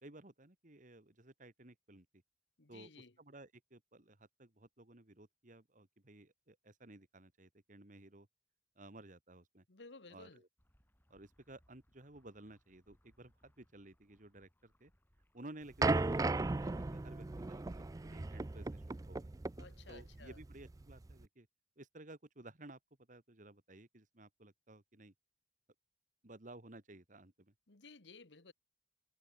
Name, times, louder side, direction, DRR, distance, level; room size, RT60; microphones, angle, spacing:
voice 1, 0.0-2.1 2.7-2.9 3.2-8.3 8.8-9.6 10.1-10.5 11.1-14.9 15.3-19.3 19.9-21.5 21.8-22.8 23.1-25.1 26.2-27.5, right 2 dB, 45° right, 2.3 m, -56 dB
voice 2, 2.6-3.1 9.7-10.4 19.6-20.4 27.7-28.5, left 3 dB, 85° left, 1.6 m, -56 dB
sound 1, 10.6-19.2, equal, 10° left, 4.5 m, -74 dB
sound 2, 15.8-21.2, right 3 dB, 20° right, 0.4 m, -36 dB
head